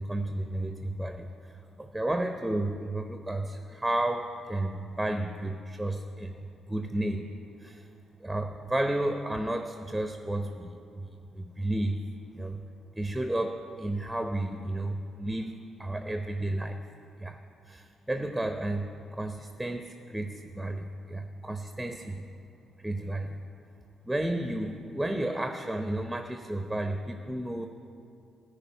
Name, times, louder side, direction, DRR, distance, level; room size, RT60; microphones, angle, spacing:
voice 1, 0.0-1.5 1.8-7.9 8.2-12.0 12.3-12.6 13.0-16.8 17.2-17.4 17.7-22.3 22.8-23.4 24.0-27.7, right 1 dB, 5° right, 6 dB, 0.7 m, -32 dB
14.5 x 5.0 x 8.7 m, 2.5 s
figure-of-eight pair, 40°, 0 cm